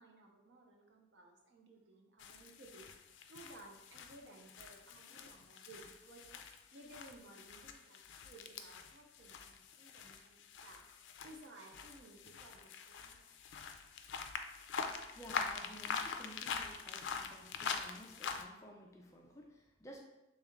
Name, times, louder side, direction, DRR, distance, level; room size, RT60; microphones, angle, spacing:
voice 1, 0.0-2.9 3.3-6.2 6.7-10.8 11.2-13.3, right 2 dB, 80° right, 2 dB, 0.7 m, -58 dB
sound 1, 2.2-18.4, left 5 dB, 90° left, 0.3 m, -44 dB
voice 2, 15.1-20.0, equal, 15° left, 0 dB, 0.4 m, -54 dB
3.2 x 3.1 x 3.6 m, 0.97 s
head